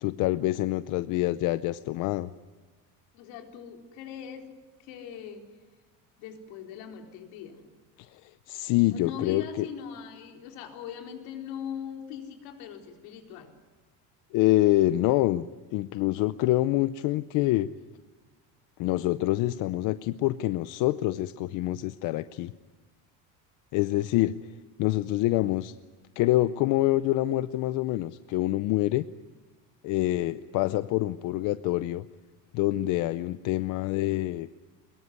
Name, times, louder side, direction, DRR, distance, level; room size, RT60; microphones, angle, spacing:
voice 1, 0.0-2.3 8.0-9.7 14.3-17.7 18.8-22.5 23.7-24.4 24.8-25.7 26.2-29.0 29.8-32.0 32.5-34.5, left 16 dB, 60° left, 14 dB, 0.7 m, -26 dB
voice 2, 3.1-4.5 4.8-5.5 6.2-7.7 8.9-13.5, left 8 dB, 80° left, 4 dB, 4.2 m, -40 dB
23.5 x 22.0 x 9.6 m, 1.3 s
cardioid pair, 180°, 35 cm